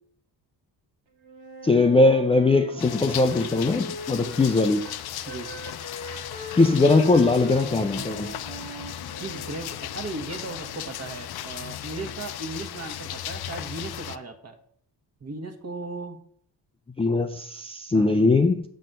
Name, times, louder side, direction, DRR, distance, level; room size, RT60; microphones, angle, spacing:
Wind instrument woodwind instrument, 1.2-5.0 5.2-9.6, right 2 dB, 85° right, 1.9 m, -39 dB
voice 1, 1.6-4.9 6.6-8.3 17.0-18.6, left 3 dB, 15° left, 0.4 m, -20 dB
sound 1, 2.8-14.2, left 11 dB, 60° left, 0.6 m, -36 dB
voice 2, 9.2-14.6 15.2-16.2 17.9-18.4, right 3 dB, 35° right, 1.3 m, -37 dB
7.5 x 4.2 x 6.6 m
cardioid pair, 95°, 43 cm